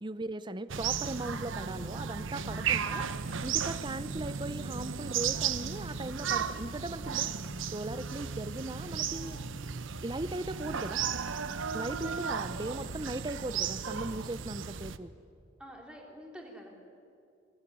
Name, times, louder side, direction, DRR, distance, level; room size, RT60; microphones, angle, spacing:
voice 1, 0.0-3.1 3.4-7.3 7.7-9.4 10.0-11.1 11.7-15.1, right 2 dB, 20° right, 15 dB, 0.6 m, -38 dB
sound 1, 0.7-15.0, right 7 dB, 75° right, 0.9 m, -35 dB
sound 2, 1.3-5.7, equal, 55° left, 6.8 m, -52 dB
voice 2, 15.6-16.7, equal, 5° right, 0 dB, 3.6 m, -47 dB
23.0 x 18.0 x 9.9 m, 2.6 s
head